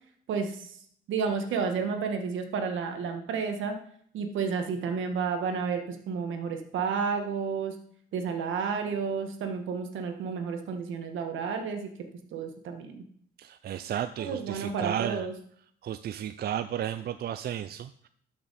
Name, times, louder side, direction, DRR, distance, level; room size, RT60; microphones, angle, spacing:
voice 1, 0.3-0.8 1.1-3.8 4.1-7.8 8.1-11.9 12.3-13.0 14.2-15.3, right 5 dB, 80° right, 5 dB, 1.5 m, -31 dB
voice 2, 13.4-15.3 15.8-18.1, right 10 dB, 55° right, 11 dB, 0.4 m, -33 dB
12.5 x 6.0 x 4.2 m, 0.62 s
cardioid pair, 90°, 20 cm